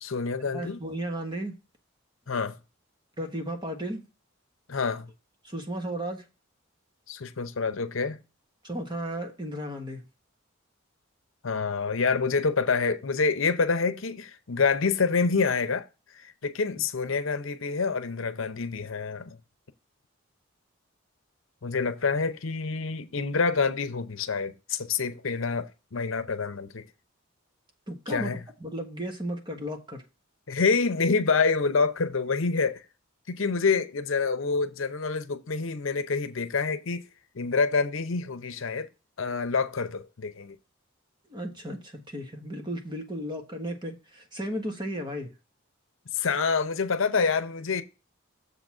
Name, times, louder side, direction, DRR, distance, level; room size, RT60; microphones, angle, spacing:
voice 1, 0.0-0.8 2.3-2.5 4.7-5.1 7.1-8.2 11.4-15.9 16.1-19.4 21.6-26.8 28.1-28.4 30.5-32.8 33.3-37.1 37.3-38.9 39.2-40.6 46.1-47.8, left 4 dB, 70° left, 0.8 m, -27 dB
voice 2, 0.5-1.5 3.2-4.1 5.4-6.2 8.6-10.0 27.9-28.3 28.6-30.0 41.3-45.3, right 1 dB, 20° right, 1.4 m, -34 dB
7.1 x 4.0 x 6.0 m
head